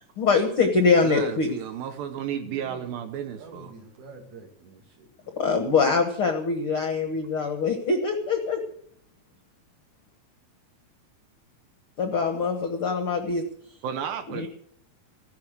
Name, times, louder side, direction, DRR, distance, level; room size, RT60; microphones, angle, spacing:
voice 1, 0.2-1.5 5.4-8.6 12.0-13.4 14.3-14.5, left 4 dB, 65° left, 1.4 m, -23 dB
voice 2, 1.0-3.7 13.8-14.5, right 9 dB, 75° right, 2.6 m, -33 dB
voice 3, 2.2-3.0 3.3-5.1, right 2 dB, 50° right, 3.6 m, -46 dB
15.5 x 10.5 x 6.5 m
omnidirectional pair, 4.5 m